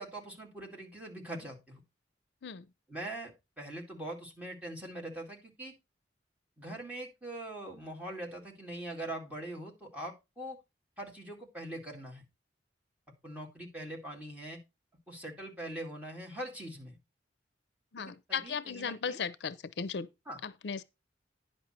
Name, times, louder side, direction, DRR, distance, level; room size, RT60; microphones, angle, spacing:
voice 1, 0.0-1.8 2.9-5.7 6.6-10.6 11.0-12.2 13.2-14.6 15.1-17.0 18.0-19.2 20.3-20.4, right 1 dB, 10° right, 2.3 m, -42 dB
voice 2, 17.9-20.1 20.4-20.8, left 6 dB, 70° left, 0.5 m, -36 dB
10.0 x 5.4 x 4.3 m
head